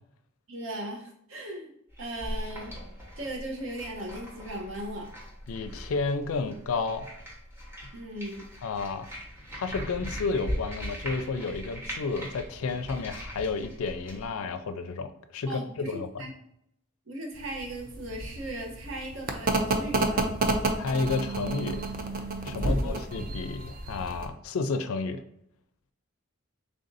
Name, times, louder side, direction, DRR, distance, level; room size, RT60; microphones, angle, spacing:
voice 1, 0.5-1.7 2.0-2.7 3.2-5.1 7.9-8.5 15.5-16.3 17.1-20.3 22.6-23.0, right 1 dB, 60° right, 1 dB, 0.8 m, -37 dB
sound 1, 1.9-14.3, equal, 10° right, 0.9 m, -40 dB
voice 2, 5.5-7.1 8.6-9.1 9.5-16.2 20.8-21.8 22.4-25.2, left 4 dB, 75° left, 9 dB, 0.4 m, -31 dB
sound 2, 17.3-24.3, right 2 dB, 40° right, 0.4 m, -30 dB
3.5 x 2.6 x 3.9 m, 0.74 s
head